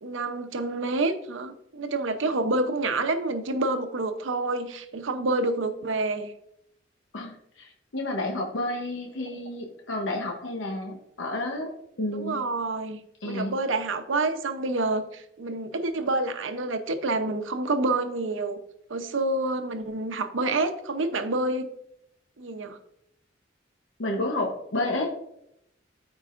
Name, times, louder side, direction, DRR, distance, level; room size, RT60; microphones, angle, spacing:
voice 1, 0.0-6.3 12.1-18.6 18.9-21.7 22.4-22.8, right 2 dB, 85° right, 8 dB, 0.8 m, -28 dB
voice 2, 7.1-11.7 12.0-12.4 13.2-13.5 24.0-25.1, left 1 dB, 80° left, 2 dB, 1.0 m, -30 dB
13.5 x 4.7 x 2.5 m, 0.77 s
head